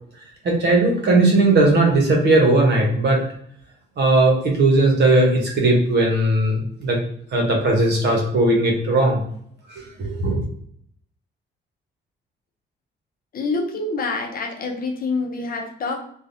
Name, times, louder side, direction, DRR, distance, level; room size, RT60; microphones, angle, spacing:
voice 1, 0.4-3.2 4.0-7.0 7.3-9.2 9.7-10.4, right 2 dB, 60° right, 0 dB, 1.0 m, -18 dB
voice 2, 13.3-16.0, left 3 dB, 50° left, 3 dB, 0.6 m, -26 dB
3.3 x 2.3 x 2.6 m, 0.65 s
cardioid pair, 90°, 20 cm